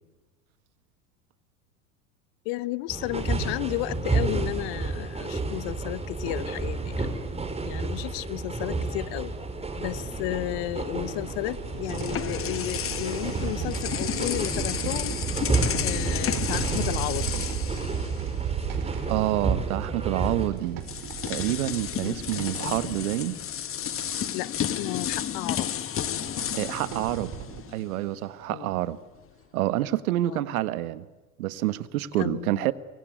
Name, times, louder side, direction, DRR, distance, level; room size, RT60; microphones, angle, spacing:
voice 1, 2.4-7.1 7.6-9.3 9.8-15.1 15.8-17.4 22.0-22.2 22.6-22.9 24.3-25.7 28.5-28.8 30.3-30.5 32.2-32.6, left 20 dB, 55° left, 1.2 m, -33 dB
sound 1, 2.9-20.5, right 3 dB, 15° right, 5.0 m, -31 dB
sound 2, 11.0-24.3 25.0-25.1 25.4-25.5 26.0-27.6, right 7 dB, 45° right, 5.0 m, -35 dB
sound 3, 11.4-18.6 18.9-19.1 20.2-20.3 20.8-28.0, left 9 dB, 30° left, 1.4 m, -32 dB
voice 2, 19.1-20.8 21.2-23.4 26.5-27.3 27.7-29.0 29.5-31.1 31.4-32.7, right 15 dB, 65° right, 1.5 m, -27 dB
24.0 x 24.0 x 9.5 m
hypercardioid pair, 80°, 45 cm